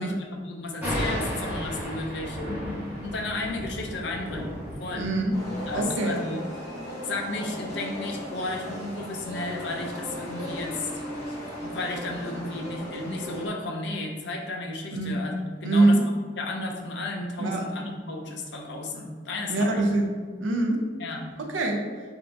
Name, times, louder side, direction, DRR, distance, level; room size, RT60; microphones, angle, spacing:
voice 1, 0.0-2.4 3.0-5.1 5.7-6.5 7.0-11.0 11.6-16.1 16.4-19.8 21.0-21.3, left 2 dB, 65° left, 1 dB, 0.5 m, -33 dB
Thunder, 0.8-5.8, equal, 10° right, 1.3 m, -33 dB
voice 2, 4.9-5.3 5.7-6.2 14.9-15.1 15.6-16.0 17.4-17.6 19.5-20.1 20.4-20.8 21.4-21.8, right 2 dB, 85° right, 2 dB, 0.6 m, -23 dB
sound 1, 5.3-13.5, left 1 dB, 15° left, 0.8 m, -37 dB
3.6 x 2.5 x 3.4 m, 1.5 s
head